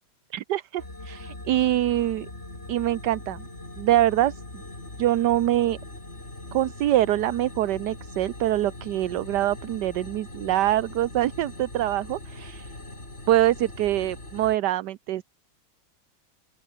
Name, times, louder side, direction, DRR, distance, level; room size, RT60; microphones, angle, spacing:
voice 1, 0.3-2.3 2.7-3.4 3.8-4.6 5.0-5.8 6.5-12.7 13.3-15.2, right 13 dB, 65° right, 1.3 m, -24 dB
sound 1, 0.8-14.6, left 2 dB, 35° left, 6.3 m, -41 dB
open air
omnidirectional pair, 2.1 m